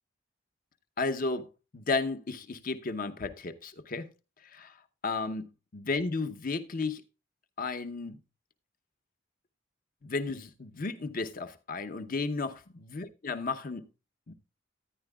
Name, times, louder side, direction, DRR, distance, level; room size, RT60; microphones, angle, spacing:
voice 1, 1.0-1.5 1.7-4.1 4.5-4.7 5.0-5.5 5.7-7.0 7.6-8.2 10.0-12.5 12.9-13.8 14.3-14.4, left 3 dB, 50° left, 0.8 m, -33 dB
13.5 x 10.0 x 2.3 m
head